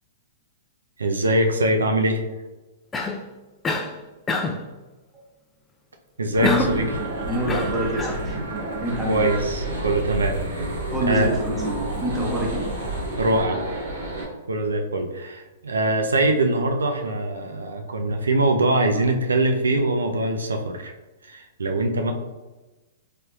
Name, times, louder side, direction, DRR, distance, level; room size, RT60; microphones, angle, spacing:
voice 1, 1.0-2.2 6.2-6.8 9.1-10.8 11.1-11.3 13.2-13.6 14.5-20.9 21.3-22.1, right 2 dB, 90° right, 4 dB, 0.3 m, -23 dB
Cough, 2.9-3.3 3.6-3.9 4.3-4.7 6.4-6.9 7.5-8.2, left 3 dB, 15° left, 0.3 m, -26 dB
sound 1, 6.3-14.2, right 2 dB, 75° right, 1.2 m, -30 dB
voice 2, 6.4-6.7 7.3-8.4 8.8-9.3 10.9-12.7, equal, 15° right, -2 dB, 0.9 m, -26 dB
3.3 x 2.8 x 2.2 m, 1.1 s
hypercardioid pair, 120°, 0 cm